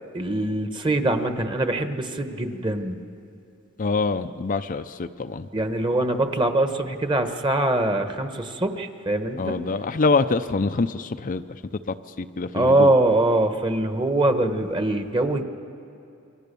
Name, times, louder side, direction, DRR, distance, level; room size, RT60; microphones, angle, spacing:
voice 1, 0.1-3.0 5.5-9.6 12.5-15.4, right 2 dB, 20° right, 7 dB, 1.3 m, -23 dB
voice 2, 3.8-5.5 9.4-11.4 11.9-12.9, left 3 dB, 40° left, 8 dB, 0.5 m, -25 dB
28.0 x 24.5 x 6.9 m, 2.6 s
head